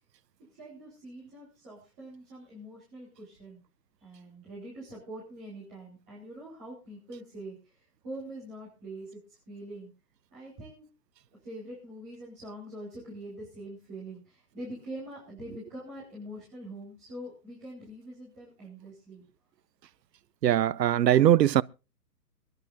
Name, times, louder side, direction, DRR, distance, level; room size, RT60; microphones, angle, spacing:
voice 1, 0.5-3.6 4.0-9.9 10.3-10.8 11.4-19.2, right 1 dB, 15° right, 4.7 m, -44 dB
voice 2, 20.4-21.6, right 11 dB, 90° right, 0.7 m, -21 dB
25.0 x 11.0 x 2.7 m
hypercardioid pair, 180°, 48 cm